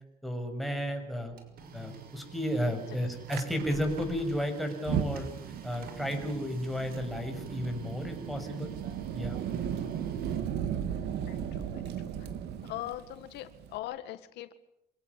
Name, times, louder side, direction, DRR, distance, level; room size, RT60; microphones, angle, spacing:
voice 1, 0.2-1.3 1.7-5.3 5.6-8.7 9.1-9.4, equal, ahead, 3 dB, 7.1 m, -33 dB
Printer, 1.1-10.9, right 3 dB, 60° right, 6.3 m, -48 dB
Fire, 3.3-3.4 4.7-13.8, right 9 dB, 80° right, 3.0 m, -36 dB
voice 2, 11.3-12.3 12.6-14.5, left 14 dB, 85° left, 11 dB, 1.8 m, -41 dB
27.0 x 17.5 x 9.9 m, 0.81 s
cardioid pair, 110°, 17 cm